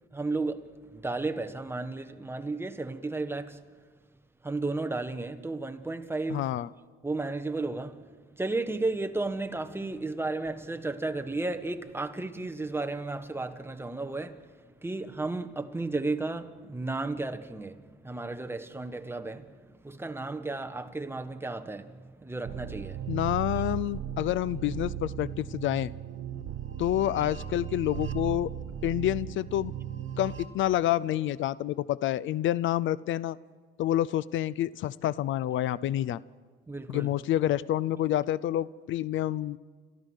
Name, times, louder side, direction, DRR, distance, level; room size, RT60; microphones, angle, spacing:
voice 1, 0.1-3.6 4.4-6.5 7.0-8.1 8.4-14.5 14.8-23.1 36.7-37.1, right 3 dB, 10° right, 1.3 m, -33 dB
voice 2, 6.3-6.7 23.1-25.9 26.8-28.5 28.8-29.7 30.2-33.4 33.8-36.2 36.9-39.6, left 13 dB, 75° left, 0.5 m, -28 dB
sound 1, 22.4-30.5, right 10 dB, 75° right, 1.5 m, -37 dB
30.0 x 14.5 x 6.5 m
cardioid pair, 90°, 20 cm